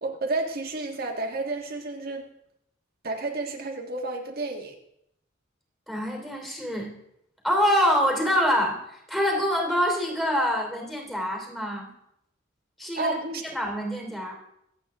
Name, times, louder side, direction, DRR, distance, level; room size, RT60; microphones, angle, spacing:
voice 1, 0.0-2.2 3.0-4.8 13.0-13.4, right 2 dB, 50° right, 1 dB, 1.6 m, -31 dB
voice 2, 5.9-7.0 7.4-11.9 12.8-13.1 13.5-14.3, equal, ahead, 0 dB, 3.0 m, -25 dB
24.5 x 8.4 x 3.6 m, 0.78 s
head